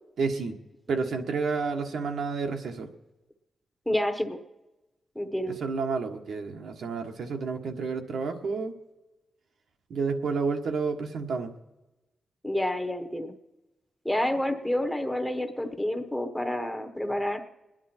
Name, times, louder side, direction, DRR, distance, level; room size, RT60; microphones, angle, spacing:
voice 1, 0.2-0.6 0.9-2.9 5.5-8.8 9.9-11.5, right 4 dB, 75° right, 4 dB, 1.4 m, -30 dB
voice 2, 3.9-4.4 5.1-5.6 12.4-13.3 14.0-17.4, left 1 dB, 5° left, 6 dB, 1.0 m, -29 dB
27.5 x 10.5 x 4.4 m, 1.1 s
wide cardioid pair, 175°, 0 cm